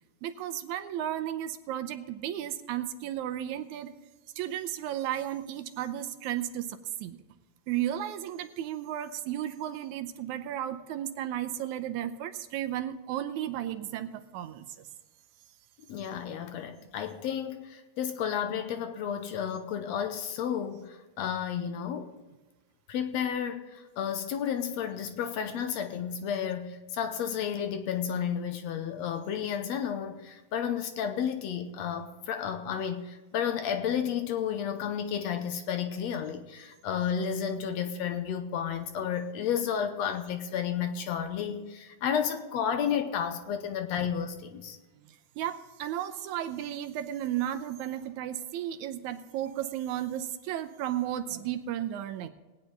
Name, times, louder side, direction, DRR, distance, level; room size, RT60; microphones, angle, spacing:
voice 1, 0.2-3.9 4.4-7.2 7.7-14.7 45.4-52.3, right 11 dB, 80° right, 9 dB, 2.1 m, -34 dB
voice 2, 15.9-22.1 22.9-44.8, left 8 dB, 70° left, 7 dB, 1.9 m, -32 dB
18.5 x 9.3 x 4.0 m, 1.2 s
omnidirectional pair, 3.3 m